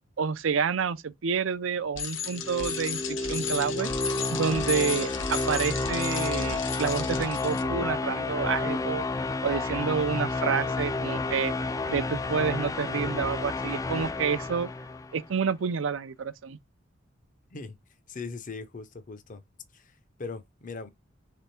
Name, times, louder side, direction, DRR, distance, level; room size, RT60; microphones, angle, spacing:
voice 1, 0.2-3.9 4.3-9.0 9.4-11.5 11.9-14.7 15.1-16.6, right 6 dB, 85° right, 0.5 m, -29 dB
Bicycle, 2.0-7.6, left 7 dB, 75° left, 0.9 m, -34 dB
sound 1, 2.2-15.3, left 3 dB, 15° left, 0.3 m, -31 dB
voice 2, 18.1-19.4 19.7-20.9, left 4 dB, 40° left, 0.7 m, -40 dB
3.5 x 3.4 x 4.3 m
head